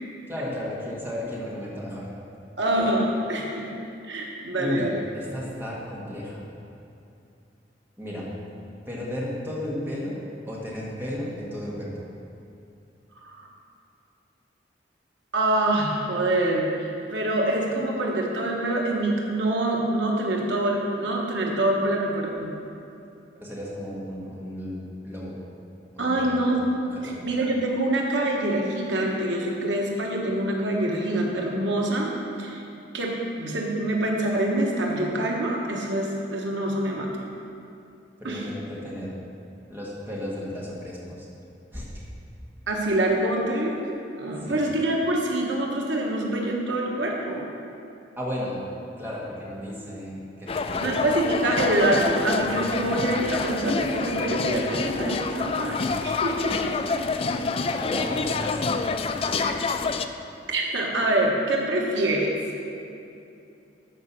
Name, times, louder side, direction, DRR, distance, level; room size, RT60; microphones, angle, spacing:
voice 1, 0.3-2.1 4.6-6.5 8.0-8.3 8.9-11.9 23.4-25.4 25.9-26.4 26.8-27.3 38.2-39.1 39.7-41.3 41.7-42.0 44.4-44.6 48.2-48.6 49.0-50.9 57.3-58.7 59.0-59.6, left 1 dB, 10° right, -5 dB, 1.9 m, -34 dB
voice 2, 2.6-3.7 4.1-5.0 13.2-13.4 15.3-22.5 26.0-26.6 27.0-32.1 32.4-32.6 32.9-37.1 38.2-38.4 42.7-43.8 44.2-47.5 50.8-56.7 59.4-59.5 60.5-62.3, right 1 dB, 90° right, -1 dB, 1.5 m, -25 dB
sound 1, 50.5-60.0, left 4 dB, 30° left, 0.4 m, -27 dB
12.5 x 5.2 x 6.1 m, 2.7 s
head